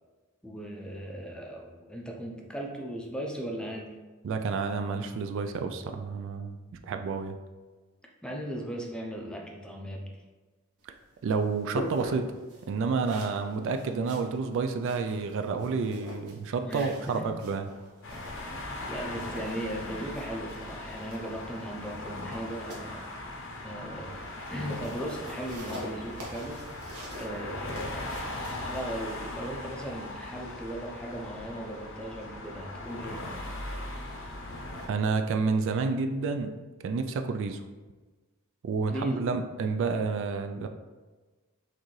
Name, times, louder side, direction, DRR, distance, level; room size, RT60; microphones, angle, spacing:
voice 1, 0.4-4.0 8.2-10.2 16.6-17.4 18.4-18.6 18.9-23.0 23.6-24.2 24.5-26.6 27.2-28.4 28.6-33.3 38.9-39.2, right 1 dB, 5° left, 0 dB, 0.5 m, -37 dB
voice 2, 4.2-6.6 6.9-7.4 11.2-12.3 12.7-17.7 34.9-36.5 36.8-37.6 38.6-40.7, right 4 dB, 60° right, 6 dB, 0.3 m, -29 dB
sound 1, 10.8-29.6, equal, 90° right, 1.1 m, -45 dB
sound 2, 18.0-34.9, left 2 dB, 60° left, 0.7 m, -39 dB
6.0 x 2.7 x 3.1 m, 1.3 s
head